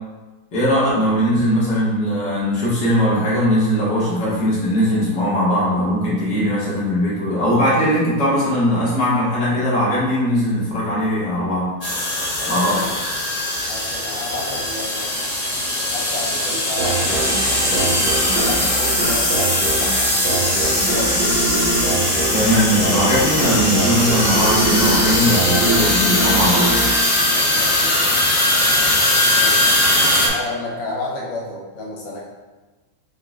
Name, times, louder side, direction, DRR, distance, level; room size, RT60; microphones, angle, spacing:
voice 1, 0.5-11.7 12.5-12.9 22.3-26.7, equal, 85° left, -8 dB, 2.0 m, -19 dB
sound 1, 11.8-30.3, left 1 dB, 40° left, 0.5 m, -20 dB
voice 2, 12.4-13.0 13.7-15.1 15.9-18.0 18.2-21.2 27.5-28.1 29.4-29.6 30.2-32.2, left 2 dB, 65° left, -4 dB, 1.2 m, -31 dB
sound 2, 16.8-28.0, right 3 dB, 75° right, 1.1 m, -24 dB
5.7 x 2.2 x 3.6 m, 1.2 s
omnidirectional pair, 1.8 m